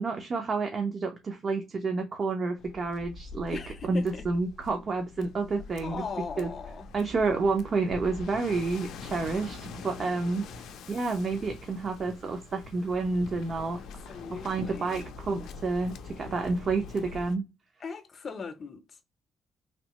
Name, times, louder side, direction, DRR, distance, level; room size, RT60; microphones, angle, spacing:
voice 1, 0.0-3.6 3.9-6.0 6.4-6.5 6.9-13.8 14.1-17.5, right 3 dB, 50° right, 0.6 m, -30 dB
Waves surf, 2.6-17.4, left 4 dB, 80° left, 0.4 m, -44 dB
voice 2, 3.5-4.3 5.8-6.9 13.8-15.0 17.8-18.8, left 5 dB, 45° left, 0.6 m, -39 dB
sound 1, 9.1-14.2, right 3 dB, 90° right, 1.6 m, -53 dB
3.2 x 2.0 x 2.9 m
cardioid pair, 90°, 0 cm